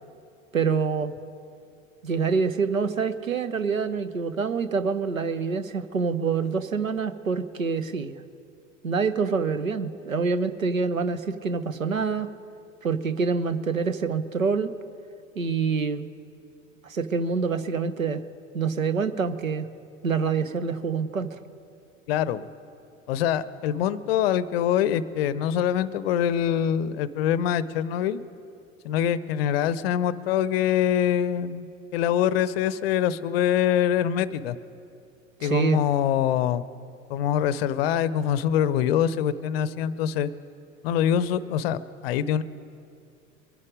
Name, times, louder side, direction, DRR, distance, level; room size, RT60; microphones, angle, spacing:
voice 1, 0.5-1.1 2.0-8.1 8.8-12.3 12.8-14.7 15.4-16.1 16.8-18.2 18.5-19.7 20.0-21.3 35.4-35.8, right 5 dB, 85° right, 13 dB, 0.8 m, -26 dB
voice 2, 22.1-22.5 23.1-28.2 28.8-34.6 35.4-36.6 37.1-40.3 40.8-42.4, left 9 dB, 50° left, 17 dB, 0.6 m, -24 dB
22.5 x 9.7 x 5.1 m, 2.4 s
figure-of-eight pair, 80°, 39 cm